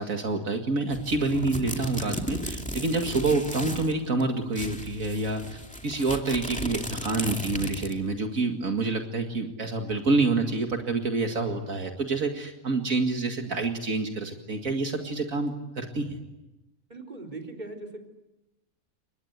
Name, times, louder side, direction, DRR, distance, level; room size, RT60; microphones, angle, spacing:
voice 1, 0.0-16.2, right 3 dB, 75° right, 3 dB, 2.5 m, -27 dB
sound 1, 0.9-3.9 4.2-4.3 4.5-8.1, equal, 5° left, 2.3 m, -35 dB
voice 2, 16.9-18.0, right 2 dB, 30° right, 2 dB, 3.9 m, -39 dB
29.5 x 24.5 x 8.2 m, 1.0 s
omnidirectional pair, 1.4 m